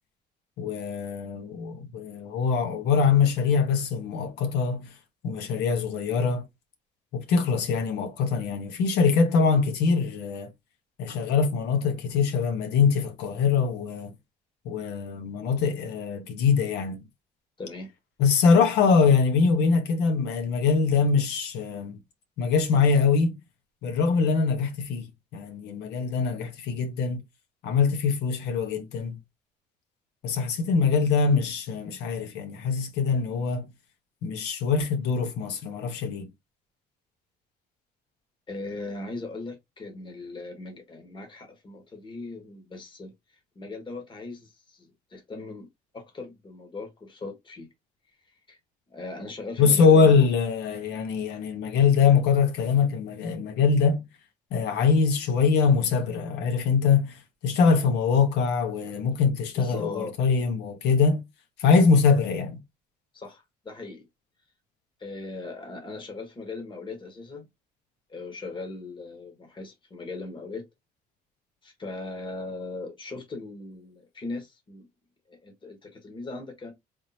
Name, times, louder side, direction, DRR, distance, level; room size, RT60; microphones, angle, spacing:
voice 1, 0.6-4.9 5.2-6.4 7.1-10.5 11.0-14.1 14.6-17.0 18.2-22.0 22.4-23.3 23.8-27.2 27.6-29.2 30.2-33.7 34.2-36.3 49.6-54.0 54.5-57.1 57.4-61.2 61.6-62.6, left 5 dB, 85° left, 1.1 m, -23 dB
voice 2, 17.6-17.9 38.5-43.1 43.5-45.7 45.9-47.7 48.5-48.6 48.9-50.3 59.5-60.1 63.1-64.0 65.0-67.5 68.1-70.6 71.6-74.9 75.3-76.7, left 3 dB, 30° left, 1.4 m, -39 dB
3.7 x 3.2 x 2.8 m
cardioid pair, 110°, 17 cm